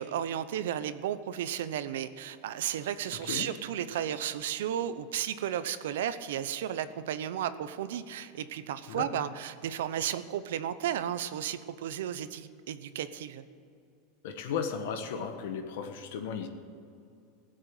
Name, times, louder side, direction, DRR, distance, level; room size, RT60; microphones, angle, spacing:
voice 1, 0.0-13.4, right 10 dB, 85° right, 13 dB, 0.8 m, -34 dB
voice 2, 8.9-9.2 14.2-16.5, left 6 dB, 70° left, 6 dB, 1.4 m, -35 dB
17.0 x 7.7 x 7.8 m, 2.5 s
supercardioid pair, 170°, 0 cm